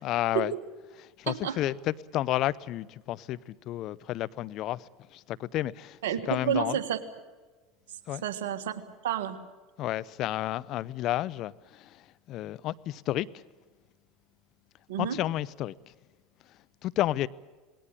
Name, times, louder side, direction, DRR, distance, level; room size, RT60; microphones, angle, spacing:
voice 1, 0.0-0.5 1.2-6.0 6.3-6.8 8.1-8.2 9.8-13.4 15.0-15.9 16.5-17.3, left 14 dB, 55° left, 0.6 m, -31 dB
voice 2, 1.3-1.6 6.0-7.0 8.2-9.4 14.9-15.2, right 10 dB, 80° right, 1.6 m, -30 dB
20.0 x 18.0 x 10.0 m
hypercardioid pair, 80°, 0 cm